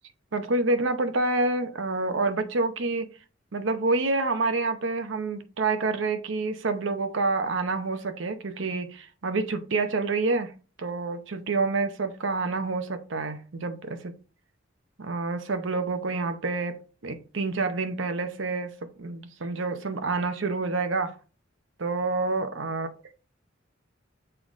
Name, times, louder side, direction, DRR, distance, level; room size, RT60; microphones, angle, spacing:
voice 1, 0.3-3.1 3.5-10.5 10.8-14.1 15.0-21.1 21.8-22.9, right 3 dB, 70° right, 0.8 m, -28 dB
6.8 x 3.9 x 3.6 m
head